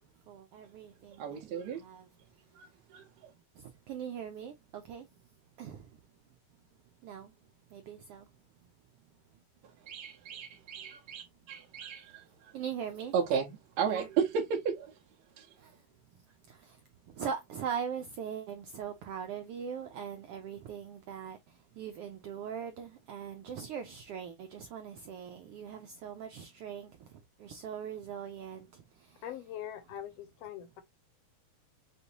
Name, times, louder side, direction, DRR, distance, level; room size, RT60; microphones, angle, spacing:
voice 1, 0.2-2.1 3.5-5.1 5.6-5.9 7.0-7.3 7.7-8.3 12.5-13.1 13.9-14.1 15.6-15.8 16.1-29.2, right 7 dB, 90° right, 1.3 m, -41 dB
voice 2, 1.2-1.8 2.6-3.0 9.9-12.2 13.1-14.9 15.4-15.5, right 7 dB, 70° right, 2.0 m, -34 dB
voice 3, 29.2-30.8, left 10 dB, 70° left, 1.7 m, -42 dB
6.7 x 2.6 x 2.8 m
omnidirectional pair, 3.4 m